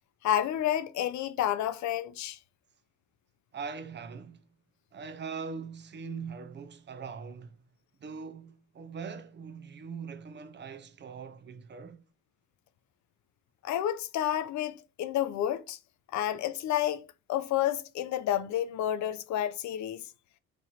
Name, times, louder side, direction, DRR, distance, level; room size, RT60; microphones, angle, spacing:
voice 1, 0.2-2.4 13.6-15.8 16.1-20.0, left 11 dB, 70° left, 0.5 m, -30 dB
voice 2, 3.5-4.4 4.9-7.5 8.0-12.0, right 5 dB, 35° right, 0.5 m, -41 dB
3.1 x 2.6 x 4.0 m
cardioid pair, 90°, 30 cm